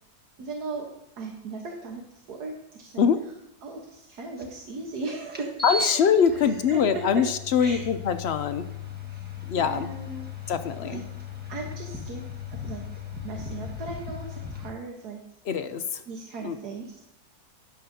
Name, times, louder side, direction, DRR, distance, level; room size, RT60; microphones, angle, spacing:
voice 1, 0.4-0.9 1.2-3.0 3.6-6.0 6.3-7.2 7.6-7.9 9.1-10.3 10.8-11.0 11.5-12.2 12.5-12.8 13.2-15.2 16.1-17.0, right 3 dB, 80° right, 0 dB, 1.8 m, -37 dB
sound 1, 4.4-4.5 5.3-14.7, left 4 dB, 5° right, 1.3 m, -37 dB
voice 2, 5.6-8.7 9.5-9.9 10.5-11.0 15.5-16.0 16.4-16.6, left 7 dB, 65° left, 10 dB, 0.6 m, -23 dB
12.5 x 11.0 x 2.8 m, 0.89 s
omnidirectional pair, 1.7 m